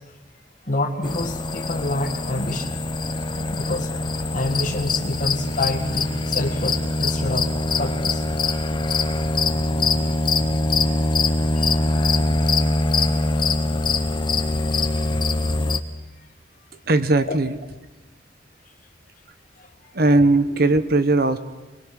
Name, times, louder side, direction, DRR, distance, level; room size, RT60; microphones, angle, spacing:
voice 1, 0.7-2.8 3.4-3.9 4.3-8.2 11.6-11.7 17.3-17.4 19.6-19.7, left 2 dB, 45° left, 2 dB, 1.7 m, -27 dB
sound 1, 1.0-15.8, left 2 dB, 25° left, 0.9 m, -23 dB
voice 2, 16.9-17.6 19.9-21.4, right 2 dB, 55° right, 11 dB, 1.1 m, -18 dB
22.5 x 21.5 x 6.4 m, 1.2 s
head